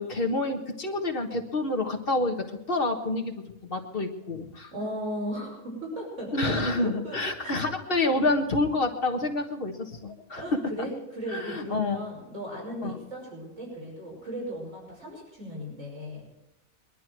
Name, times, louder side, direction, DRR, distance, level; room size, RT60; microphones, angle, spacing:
voice 1, 0.0-4.7 6.3-10.6 11.3-12.0 12.8-12.9, left 2 dB, 40° left, 4 dB, 1.7 m, -28 dB
voice 2, 4.7-7.6 8.1-8.2 10.3-16.3, equal, 55° right, -2 dB, 6.2 m, -36 dB
22.0 x 11.5 x 4.7 m, 0.91 s
omnidirectional pair, 1.5 m